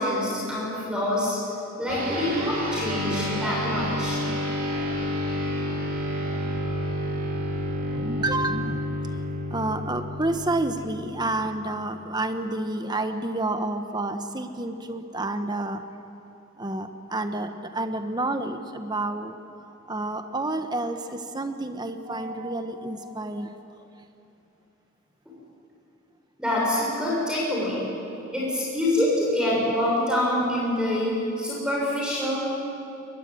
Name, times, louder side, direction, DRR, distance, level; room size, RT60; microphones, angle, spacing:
voice 1, 0.0-1.4 1.8-4.2 26.4-27.8 28.3-32.5, left 1 dB, 5° right, -5 dB, 6.7 m, -25 dB
sound 1, 1.9-11.6, equal, 45° right, 4.1 m, -30 dB
voice 2, 4.7-5.3 6.3-6.4 7.8-9.0 9.5-15.8 16.6-19.4 19.9-23.5, right 2 dB, 20° right, 7 dB, 1.2 m, -30 dB
22.5 x 21.0 x 9.1 m, 2.8 s
head